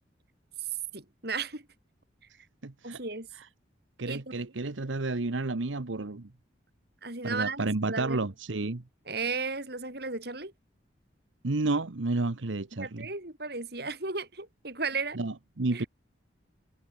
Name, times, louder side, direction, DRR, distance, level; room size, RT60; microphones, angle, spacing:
voice 1, 0.9-1.7 2.8-3.3 4.0-4.4 7.0-8.2 9.1-10.5 12.7-15.2 15.7-15.9, right 4 dB, 55° right, 4.9 m, -35 dB
voice 2, 2.6-3.0 4.0-6.3 7.2-8.8 11.4-13.1 15.1-15.8, right 2 dB, 90° right, 1.1 m, -31 dB
head